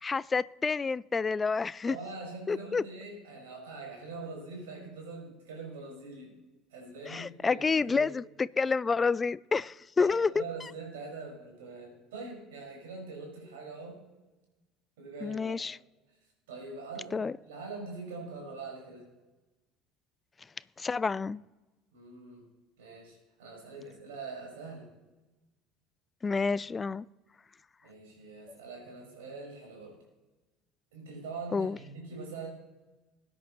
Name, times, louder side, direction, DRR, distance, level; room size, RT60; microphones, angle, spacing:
voice 1, 0.0-2.0 2.5-2.8 7.1-10.4 15.2-15.8 17.1-17.4 20.8-21.4 26.2-27.1 31.5-31.8, left 4 dB, 25° left, 0.3 m, -29 dB
voice 2, 1.8-6.3 6.7-8.1 10.0-14.0 15.0-15.6 16.5-19.1 21.9-22.5 22.8-24.9 27.8-30.0 30.9-32.5, right 3 dB, 70° right, 5.1 m, -43 dB
21.5 x 9.7 x 3.0 m
figure-of-eight pair, 65°, 0 cm